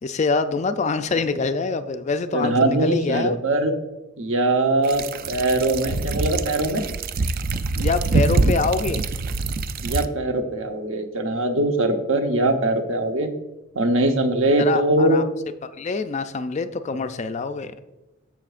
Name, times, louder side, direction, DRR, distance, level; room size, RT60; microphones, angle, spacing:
voice 1, 0.0-3.4 7.8-9.0 14.6-15.2 15.6-17.7, left 4 dB, 30° left, 10 dB, 0.3 m, -25 dB
voice 2, 2.3-3.7 4.2-6.8 9.8-13.3 13.7-15.2, right 2 dB, 65° right, 5 dB, 0.9 m, -21 dB
sound 1, 4.8-10.0, right 3 dB, 40° right, 0.4 m, -24 dB
14.0 x 5.7 x 2.5 m, 1.0 s
head